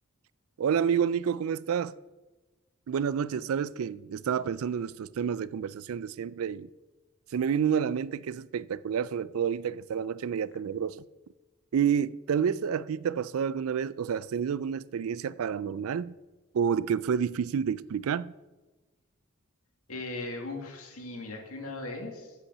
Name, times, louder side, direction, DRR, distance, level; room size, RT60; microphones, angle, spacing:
voice 1, 0.6-1.9 2.9-6.7 7.3-11.0 11.7-16.2 16.5-18.3, right 7 dB, 75° right, 0.4 m, -29 dB
voice 2, 19.9-22.3, left 2 dB, 90° left, 2.2 m, -38 dB
8.5 x 8.2 x 6.7 m
head